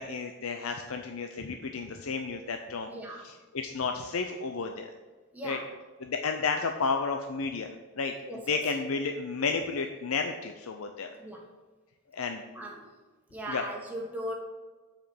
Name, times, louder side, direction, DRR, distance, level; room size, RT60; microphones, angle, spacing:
voice 1, 0.0-2.9 3.5-4.9 5.4-5.6 6.0-8.1 8.5-11.1 12.1-12.4 13.5-13.6, left 4 dB, 85° left, 5 dB, 0.6 m, -32 dB
voice 2, 2.9-3.4 5.3-5.7 8.2-8.7 11.2-11.5 12.5-13.0 13.3-14.3, equal, 10° right, -2 dB, 1.5 m, -39 dB
7.6 x 5.0 x 6.9 m, 1.3 s
head